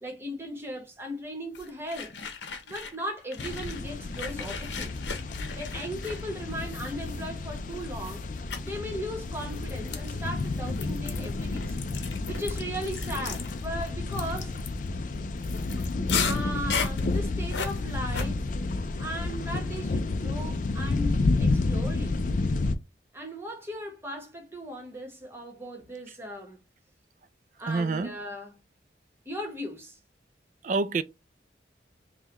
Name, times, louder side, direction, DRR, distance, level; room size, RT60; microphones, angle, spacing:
voice 1, 0.0-2.1 2.6-5.2 5.5-8.2 8.6-11.8 12.2-14.5 16.2-18.5 19.0-22.2 23.1-26.6 27.6-28.5 29.2-30.0, equal, 15° right, 1.0 m, -37 dB
sound 1, 1.5-3.0 3.3-7.5 8.0-8.2 8.5-8.7 9.4-18.3, left 5 dB, 80° left, 0.7 m, -36 dB
sound 2, 3.4-22.8, left 3 dB, 45° left, 0.4 m, -31 dB
voice 2, 27.6-28.1 30.6-31.0, right 3 dB, 45° right, 0.3 m, -27 dB
5.5 x 2.2 x 3.0 m
head